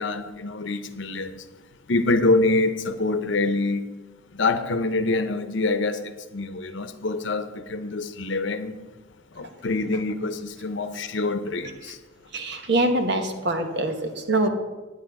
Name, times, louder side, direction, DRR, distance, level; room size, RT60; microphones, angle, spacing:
voice 1, 0.0-1.4 1.9-3.8 4.3-8.8 9.3-12.0, left 2 dB, 65° left, 0.8 m, -25 dB
voice 2, 12.3-14.5, right 2 dB, 55° right, 1.2 m, -24 dB
10.5 x 9.6 x 4.8 m
head